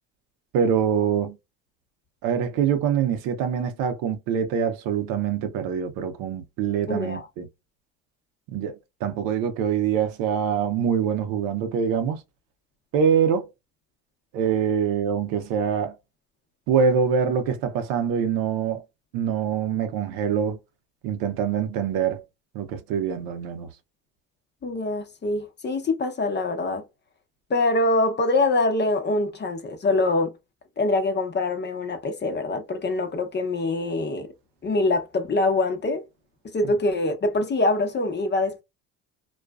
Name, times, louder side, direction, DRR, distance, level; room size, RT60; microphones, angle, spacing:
voice 1, 0.5-1.4 2.2-7.5 8.5-12.2 12.9-13.5 14.3-16.0 16.7-18.8 19.1-20.6 21.0-22.2 22.5-23.7 36.6-36.7, right 7 dB, 75° right, 0.7 m, -24 dB
voice 2, 6.9-7.2 24.6-26.8 27.5-30.3 30.8-34.3 34.6-36.0 36.5-38.6, left 2 dB, 30° left, 0.8 m, -24 dB
2.4 x 2.2 x 2.3 m
supercardioid pair, 75°, 36 cm